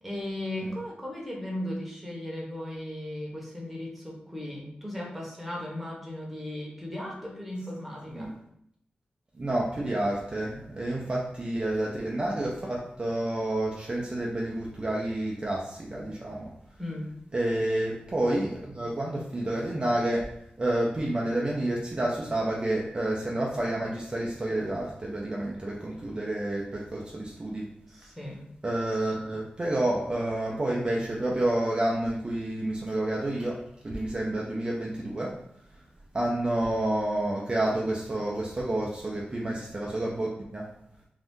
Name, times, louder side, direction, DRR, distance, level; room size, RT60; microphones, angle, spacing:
voice 1, 0.0-8.3 16.8-17.1 27.9-28.5, left 1 dB, 5° right, -3 dB, 0.9 m, -36 dB
voice 2, 9.4-16.5 17.3-20.3 20.6-27.7 28.6-35.4 36.1-40.7, right 1 dB, 30° right, -3 dB, 0.5 m, -29 dB
2.7 x 2.4 x 3.5 m, 0.73 s
wide cardioid pair, 85°, 3 cm